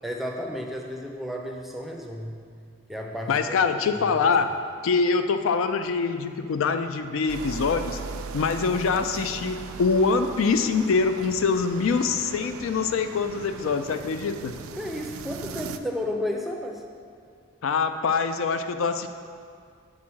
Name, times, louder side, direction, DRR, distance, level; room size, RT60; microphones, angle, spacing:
voice 1, 0.0-2.4 2.9-3.6 3.9-4.0 14.6-16.8, left 1 dB, ahead, 1 dB, 0.4 m, -32 dB
voice 2, 3.3-4.5 4.8-8.0 8.3-14.6 17.6-19.1, left 5 dB, 75° left, 9 dB, 0.4 m, -24 dB
sound 1, 7.3-15.8, right 6 dB, 90° right, 0.4 m, -39 dB
7.5 x 3.7 x 6.1 m, 2.2 s
head